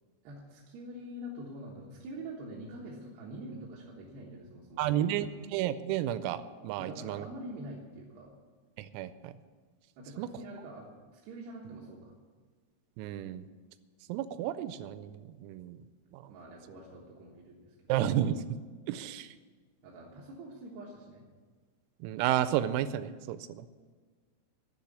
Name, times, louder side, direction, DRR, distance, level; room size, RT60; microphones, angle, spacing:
voice 1, 0.2-5.2 6.8-8.3 10.0-12.1 16.3-17.7 19.8-21.2, right 1 dB, 65° right, -4 dB, 3.0 m, -45 dB
voice 2, 4.8-7.3 8.8-9.3 10.2-10.3 13.0-13.5 14.1-15.8 16.1-16.2 17.9-18.4 18.9-19.3 22.0-23.6, right 11 dB, 90° right, 13 dB, 3.3 m, -32 dB
11.0 x 7.5 x 9.7 m, 1.5 s
omnidirectional pair, 6.0 m